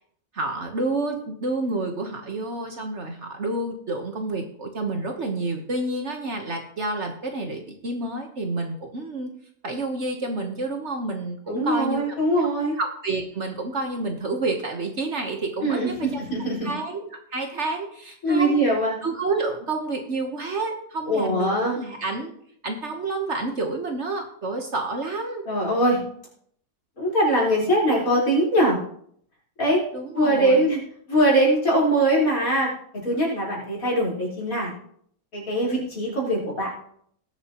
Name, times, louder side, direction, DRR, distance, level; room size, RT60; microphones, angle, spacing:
voice 1, 0.3-9.3 9.6-12.2 12.8-16.3 16.6-18.6 19.0-22.3 22.6-25.5 29.9-30.7, right 2 dB, 50° right, 4 dB, 1.4 m, -29 dB
voice 2, 11.5-12.8 15.6-16.7 18.2-18.9 21.1-21.8 25.5-26.0 27.0-28.8 29.6-29.8 30.1-30.8 31.1-34.7 35.3-36.7, right 1 dB, 60° left, -5 dB, 4.8 m, -22 dB
18.5 x 7.8 x 3.0 m, 0.65 s
omnidirectional pair, 1.6 m